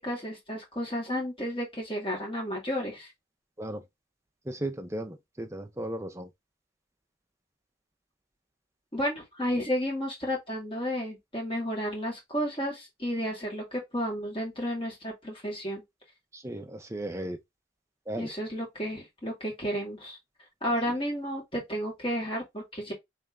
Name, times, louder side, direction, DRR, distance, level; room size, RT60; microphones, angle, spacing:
voice 1, 0.0-3.1 8.9-15.8 18.2-20.2 20.6-22.9, equal, 25° left, 2.1 m, -32 dB
voice 2, 4.5-6.3 16.3-17.4 18.1-18.3, right 1 dB, 15° right, 0.5 m, -35 dB
3.4 x 3.2 x 3.5 m
head